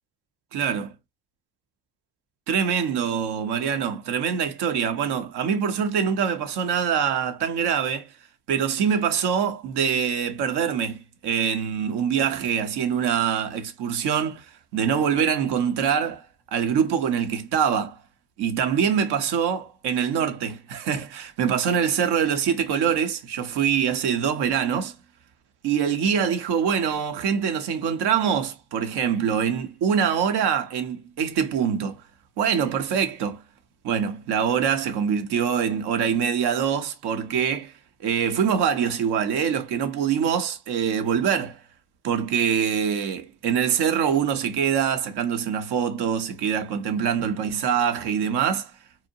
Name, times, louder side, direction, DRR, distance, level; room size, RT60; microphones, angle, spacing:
voice 1, 0.5-0.9 2.5-8.1 8.5-14.5 14.7-18.0 18.4-25.0 25.6-32.0 32.4-33.4 33.8-37.7 38.0-41.6 42.0-48.7, right 7 dB, 65° right, 0.7 m, -24 dB
2.7 x 2.1 x 2.6 m
supercardioid pair, 65°, 43 cm